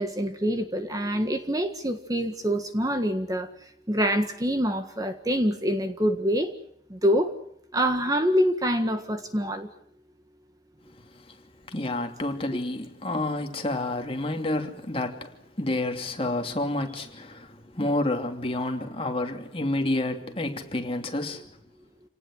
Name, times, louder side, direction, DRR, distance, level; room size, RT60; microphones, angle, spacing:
voice 1, 0.0-3.5 3.9-6.5 6.9-7.3 7.7-9.7, equal, 20° right, 1.7 m, -25 dB
voice 2, 11.7-15.3 15.6-17.5 17.8-21.4, left 2 dB, 30° left, 2.8 m, -29 dB
28.0 x 19.0 x 8.9 m
head